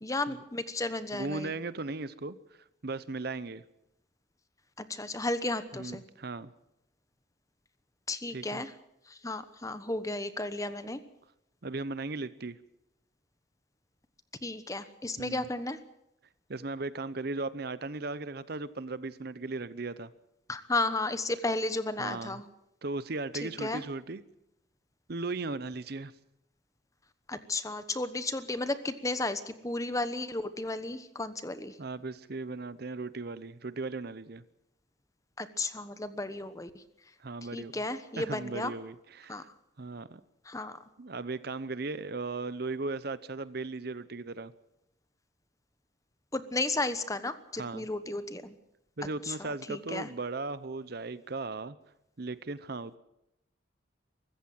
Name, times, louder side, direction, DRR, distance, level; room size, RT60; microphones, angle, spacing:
voice 1, 0.0-1.5 4.8-6.0 8.1-8.7 9.1-11.0 14.4-15.8 20.5-22.4 23.4-23.8 27.3-31.8 35.4-36.8 37.5-38.7 39.3-39.4 40.4-40.8 46.3-48.6 49.2-49.4 49.7-50.1, left 2 dB, 15° left, 11 dB, 1.1 m, -33 dB
voice 2, 1.1-2.4 2.8-3.6 5.8-6.5 8.3-8.6 11.6-12.6 15.2-15.5 16.5-20.1 22.0-22.4 22.8-24.2 25.1-26.1 31.8-34.4 37.2-37.7 38.2-39.5 39.8-40.2 41.0-44.5 47.6-47.9 49.0-51.8 52.2-53.0, right 3 dB, 55° right, 15 dB, 0.8 m, -37 dB
23.5 x 14.5 x 7.7 m, 0.84 s
head